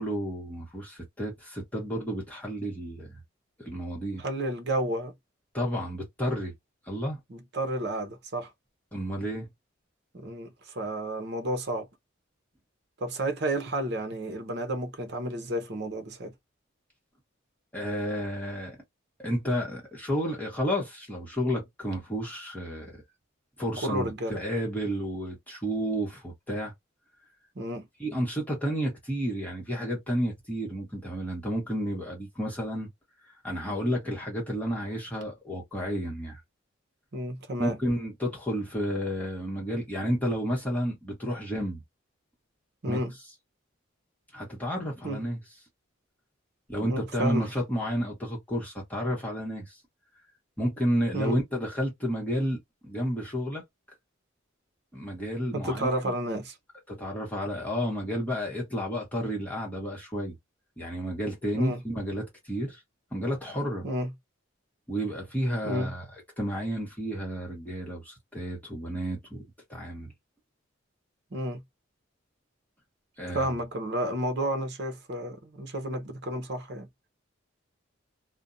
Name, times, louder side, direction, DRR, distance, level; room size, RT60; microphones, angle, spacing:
voice 1, 0.0-3.2 3.6-4.2 5.5-6.5 6.8-7.2 8.9-9.5 17.7-18.8 19.2-23.0 23.6-26.7 28.0-32.9 33.4-36.4 37.6-41.8 42.9-43.0 44.3-45.4 46.7-49.8 50.6-53.6 54.9-56.1 56.9-60.3 60.8-62.8 63.1-63.9 64.9-66.0 66.4-69.4 69.7-70.1 73.2-73.5, equal, 10° left, 1.1 m, -31 dB
voice 2, 4.2-5.1 7.3-8.5 10.1-11.9 13.0-16.3 23.8-24.4 27.6-27.9 37.1-37.8 42.8-43.1 45.0-45.2 46.8-47.5 51.1-51.4 55.5-56.6 61.5-61.8 63.8-64.1 65.6-65.9 71.3-71.6 73.3-76.9, right 1 dB, 55° right, 0.8 m, -31 dB
2.5 x 2.2 x 2.5 m
head